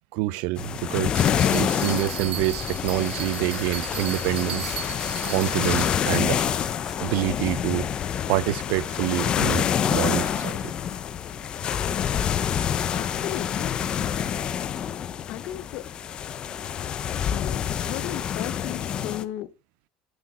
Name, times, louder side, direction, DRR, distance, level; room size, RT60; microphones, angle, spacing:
voice 1, 0.1-4.8 5.3-6.4 7.0-7.9 8.3-10.7, right 17 dB, 70° right, 0.4 m, -27 dB
sound 1, 0.6-19.2, left 9 dB, 35° left, 0.6 m, -27 dB
Bell, 1.1-6.7, right 10 dB, 45° right, 1.2 m, -37 dB
sound 2, 1.5-2.2 2.6-2.7 2.9-7.0 7.9-8.0 9.0-9.2 11.6-11.7, equal, ahead, 2.9 m, -47 dB
voice 2, 12.9-13.8 15.3-15.8 17.3-19.5, left 14 dB, 60° left, 0.9 m, -35 dB
9.7 x 6.3 x 4.1 m
cardioid pair, 140°, 3 cm